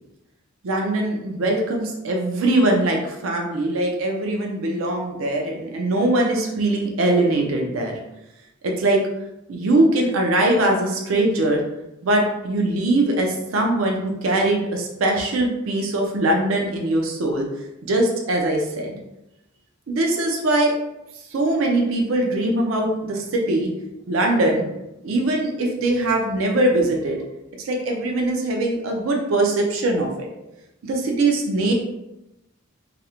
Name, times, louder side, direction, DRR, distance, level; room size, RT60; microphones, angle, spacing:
voice 1, 0.6-8.0 8.6-9.0 9.5-11.6 12.0-17.5 17.8-18.9 19.9-20.7 21.3-23.7 24.1-24.6 25.0-27.2 27.6-30.3 30.8-31.7, right 2 dB, 75° right, 1 dB, 0.4 m, -21 dB
2.4 x 2.0 x 2.8 m, 0.91 s
head